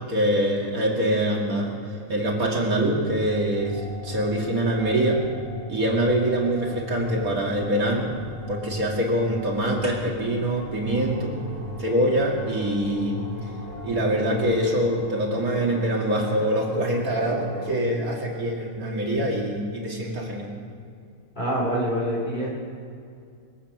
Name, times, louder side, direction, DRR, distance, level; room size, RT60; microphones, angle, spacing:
voice 1, 0.1-1.7 2.1-5.2 5.7-8.1 8.5-11.3 11.8-13.2 13.8-20.5, right 1 dB, 85° right, -2 dB, 3.0 m, -24 dB
sound 1, 3.0-14.9, left 3 dB, 5° left, 2.0 m, -39 dB
sound 2, 8.2-8.3 9.6-17.8, equal, 40° right, 2.5 m, -42 dB
voice 2, 16.0-16.5 17.2-18.1 21.4-22.5, equal, 35° left, -5 dB, 4.4 m, -29 dB
24.0 x 8.6 x 6.1 m, 2.3 s
omnidirectional pair, 1.5 m